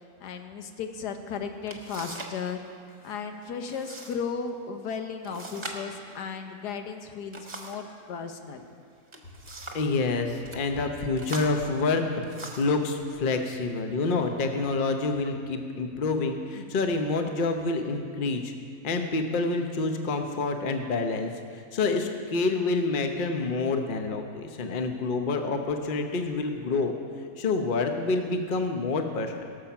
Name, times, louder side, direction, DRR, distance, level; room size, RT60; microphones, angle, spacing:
voice 1, 0.2-2.6 3.0-8.6, left 6 dB, 85° left, 6 dB, 1.5 m, -35 dB
sound 1, 1.2-1.3 1.7-2.4 2.7-3.2 3.7-4.2 4.5-4.6 5.2-7.9 8.9-9.9 10.4-10.6 11.2-12.8 13.6-13.7 14.3-14.8, right 2 dB, 20° right, 1.0 m, -42 dB
voice 2, 9.7-12.0 12.4-18.4 18.8-21.3 21.7-26.9 27.4-29.4, left 3 dB, 40° left, 5 dB, 0.9 m, -27 dB
18.0 x 7.1 x 5.8 m, 2.3 s
omnidirectional pair, 1.7 m